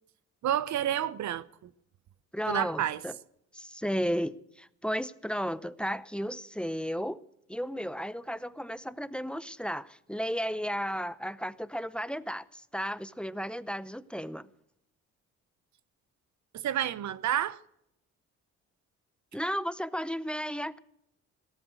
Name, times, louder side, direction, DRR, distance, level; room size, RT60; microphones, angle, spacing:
voice 1, 0.4-1.7 2.5-3.0 16.5-17.6, right 11 dB, 65° right, 0.9 m, -30 dB
voice 2, 2.3-3.2 3.5-7.2 7.5-14.5 19.3-20.8, equal, 5° left, 0.7 m, -34 dB
17.5 x 13.0 x 6.3 m
cardioid pair, 90°, 30 cm